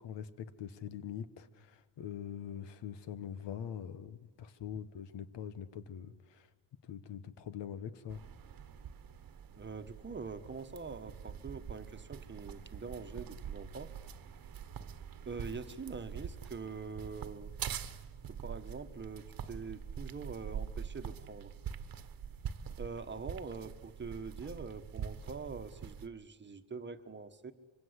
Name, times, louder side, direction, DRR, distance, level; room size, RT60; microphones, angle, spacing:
voice 1, 0.0-6.5 6.8-8.2, left 8 dB, 70° left, 13 dB, 1.5 m, -43 dB
sound 1, 8.1-26.1, right 7 dB, 50° right, 1.3 m, -45 dB
voice 2, 9.5-13.9 15.2-17.5 18.2-21.5 22.8-27.5, right 4 dB, 25° right, 9 dB, 1.3 m, -44 dB
25.0 x 24.5 x 8.2 m, 1.3 s
cardioid pair, 125°, 43 cm